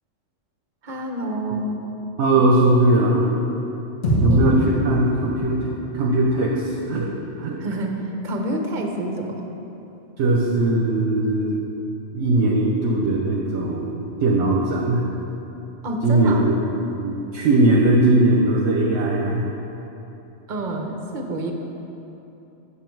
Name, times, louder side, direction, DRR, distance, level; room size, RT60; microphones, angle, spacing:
voice 1, 0.8-1.8 4.3-4.5 7.6-9.4 15.8-16.5 20.5-21.5, right 1 dB, 45° right, 3 dB, 0.8 m, -28 dB
voice 2, 2.2-3.3 4.1-5.7 5.9-7.1 7.4-7.6 10.2-11.6 12.1-15.1 16.0-19.5, right 2 dB, 70° right, -1 dB, 1.0 m, -19 dB
sound 1, 4.0-8.4, equal, 60° left, 1.7 m, -27 dB
7.3 x 6.7 x 4.6 m, 3.0 s
omnidirectional pair, 1.3 m